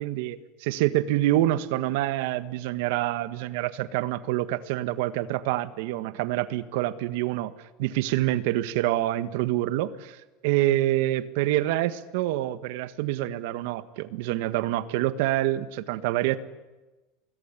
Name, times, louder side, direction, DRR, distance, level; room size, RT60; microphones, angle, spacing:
voice 1, 0.0-7.5 7.8-10.2 10.4-16.4, right 15 dB, 75° right, 14 dB, 1.6 m, -26 dB
25.0 x 20.5 x 9.9 m, 1.1 s
supercardioid pair, 115°, 0 cm